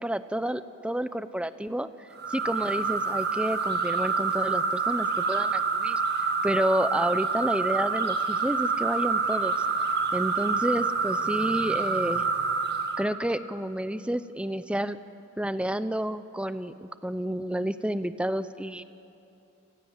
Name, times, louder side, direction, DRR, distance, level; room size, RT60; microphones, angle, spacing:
voice 1, 0.0-1.9 2.3-6.0 6.4-9.5 10.1-12.2 13.0-15.0 15.4-18.8, right 1 dB, 5° right, 13 dB, 0.6 m, -30 dB
sound 1, 2.2-13.0, right 4 dB, 50° right, 1.6 m, -27 dB
29.5 x 18.5 x 7.3 m, 2.8 s
head